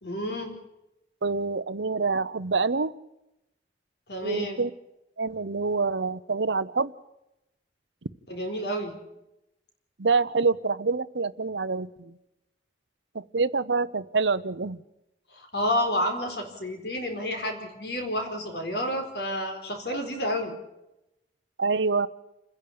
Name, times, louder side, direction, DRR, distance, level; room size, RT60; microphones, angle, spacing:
voice 1, 0.0-0.5 4.1-4.6 8.3-8.9 15.3-20.5, equal, 65° left, 5 dB, 4.4 m, -30 dB
voice 2, 1.2-2.9 4.2-4.7 5.2-6.9 10.0-12.2 13.1-14.8 21.6-22.1, right 4 dB, 85° right, 15 dB, 0.9 m, -26 dB
29.0 x 10.5 x 8.7 m, 0.88 s
head